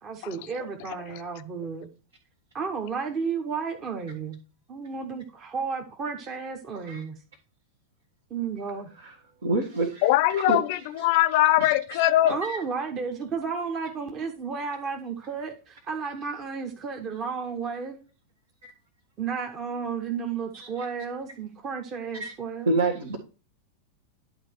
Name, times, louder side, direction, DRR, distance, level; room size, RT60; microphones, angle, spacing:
voice 1, 0.0-1.9 2.5-4.4 4.7-7.2 8.3-8.9 12.2-18.0 19.2-22.7, right 5 dB, 30° right, 1.1 m, -33 dB
voice 2, 9.4-10.1 10.4-10.6 11.6-11.7 12.4-12.6 20.5-20.7 22.1-22.3 22.7-23.2, right 3 dB, 70° right, 1.7 m, -27 dB
voice 3, 10.0-12.4, left 15 dB, 50° left, 0.6 m, -21 dB
11.0 x 4.2 x 4.5 m
figure-of-eight pair, 90°, 0 cm